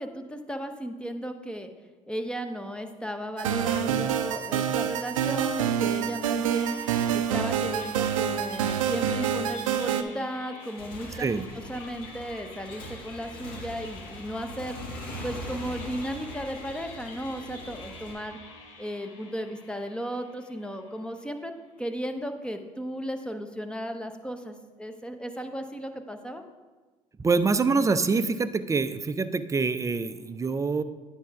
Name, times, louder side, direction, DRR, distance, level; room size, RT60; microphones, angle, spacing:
voice 1, 0.0-1.7 2.1-6.8 7.1-11.4 11.7-14.8 15.2-18.4 18.8-21.5 21.8-26.4, equal, 5° left, 6 dB, 0.8 m, -35 dB
sound 1, 3.4-10.0, right 9 dB, 90° right, 0.4 m, -27 dB
sound 2, 6.5-21.8, left 3 dB, 85° left, 1.0 m, -48 dB
Motorcycle / Engine, 10.6-18.1, equal, 60° left, 1.7 m, -42 dB
voice 2, 11.1-11.5 27.2-30.8, right 4 dB, 20° right, 11 dB, 0.5 m, -25 dB
9.4 x 3.5 x 5.8 m, 1.3 s
hypercardioid pair, 65°, 17 cm